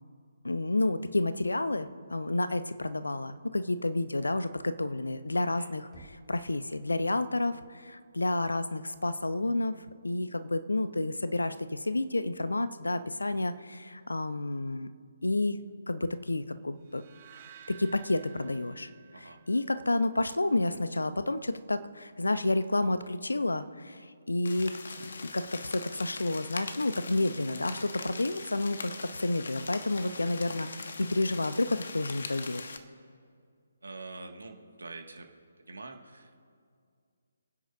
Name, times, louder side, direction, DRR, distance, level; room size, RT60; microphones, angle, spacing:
voice 1, 0.4-9.7 10.0-14.9 15.2-15.6 15.9-17.0 17.7-24.7 25.3-32.6, left 2 dB, 75° left, 12 dB, 0.8 m, -30 dB
Knock, 5.9-6.8, right 2 dB, 10° left, 2.0 m, -55 dB
sound 1, 16.9-20.0, right 10 dB, 35° right, 1.2 m, -54 dB
sound 2, 24.4-32.8, left 4 dB, 55° left, 1.1 m, -42 dB
voice 2, 33.8-35.3 35.7-36.4, right 3 dB, 70° right, 3 dB, 2.1 m, -45 dB
27.5 x 9.7 x 2.8 m, 2.2 s
figure-of-eight pair, 140°, 0 cm